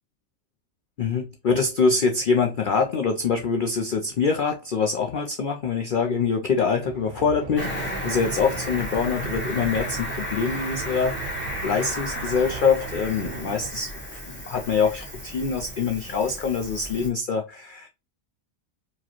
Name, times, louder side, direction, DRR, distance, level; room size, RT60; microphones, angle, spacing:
voice 1, 1.0-11.4 11.6-17.9, left 5 dB, 75° left, 0.4 m, -24 dB
sound 1, 6.8-13.7, right 8 dB, 65° right, 0.8 m, -38 dB
Cricket, 7.5-17.1, equal, 10° left, 1.4 m, -34 dB
4.9 x 3.0 x 2.9 m
omnidirectional pair, 1.5 m